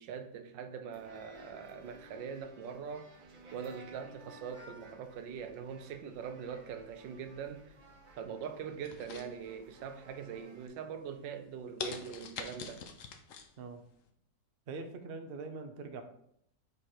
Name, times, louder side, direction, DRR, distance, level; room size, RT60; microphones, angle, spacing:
voice 1, 0.0-3.1 3.5-7.8 8.2-12.8, right 7 dB, 85° right, 1.3 m, -42 dB
sound 1, 0.9-10.7, right 2 dB, 35° right, 1.0 m, -56 dB
sound 2, 8.8-9.9 10.3-10.7 11.2-11.3 11.8-13.5 13.9-14.0, left 6 dB, 65° left, 0.8 m, -43 dB
voice 2, 14.7-16.0, right 3 dB, 70° right, 0.5 m, -43 dB
5.1 x 4.3 x 4.7 m
omnidirectional pair, 1.9 m